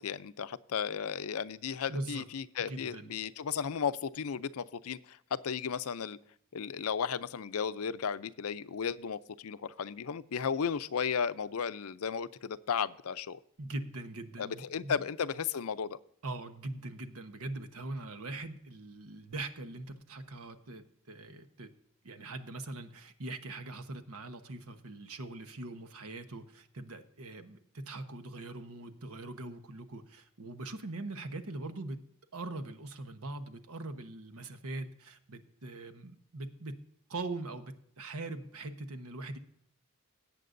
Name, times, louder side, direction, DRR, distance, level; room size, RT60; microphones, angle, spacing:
voice 1, 0.0-6.2 6.5-13.4 14.4-16.0, left 6 dB, 85° left, 15 dB, 0.5 m, -34 dB
voice 2, 1.9-2.2 2.6-3.1 13.6-15.0 16.2-21.7 22.0-32.0 32.3-36.8 37.1-39.4, right 2 dB, 85° right, 9 dB, 1.1 m, -42 dB
17.5 x 8.5 x 2.6 m, 0.69 s
head